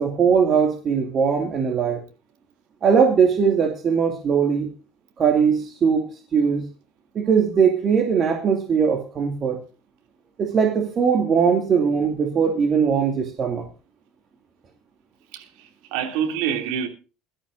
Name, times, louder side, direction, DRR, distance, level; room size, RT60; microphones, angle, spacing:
voice 1, 0.0-2.0 2.8-4.7 5.2-6.1 6.3-6.6 7.1-9.6 10.4-13.7, right 6 dB, 35° right, 2.4 m, -20 dB
voice 2, 15.3-16.9, right 8 dB, 60° right, 2.9 m, -27 dB
23.0 x 13.0 x 2.7 m
figure-of-eight pair, 65°, 0 cm